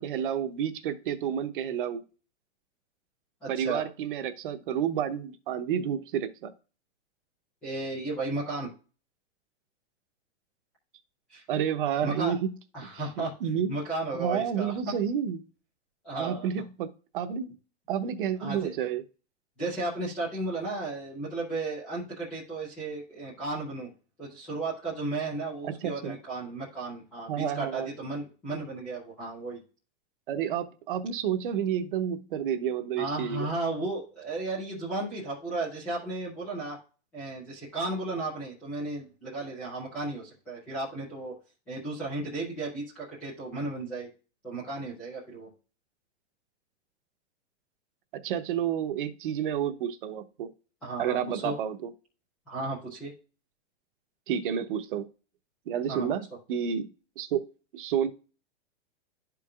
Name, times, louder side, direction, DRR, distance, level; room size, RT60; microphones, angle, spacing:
voice 1, 0.0-2.0 3.5-6.5 11.5-12.5 13.2-13.7 14.1-15.4 16.1-16.9 17.1-17.5 17.9-19.0 25.6-26.2 27.3-27.9 30.3-33.5 48.2-50.5 51.0-51.8 54.3-55.1 55.7-56.9 57.2-57.4 57.7-58.1, right 8 dB, 45° right, 9 dB, 0.9 m, -30 dB
voice 2, 3.4-3.8 7.6-8.7 11.3-11.4 12.0-12.3 12.7-13.3 13.7-14.9 16.0-16.5 18.4-18.7 19.6-23.9 24.2-29.6 33.0-36.8 37.1-41.3 41.7-44.1 44.4-45.5 50.8-51.5 52.5-53.1 55.9-56.1, right 2 dB, 5° left, -9 dB, 0.3 m, -34 dB
12.0 x 4.7 x 2.3 m, 0.35 s
supercardioid pair, 175°, 35 cm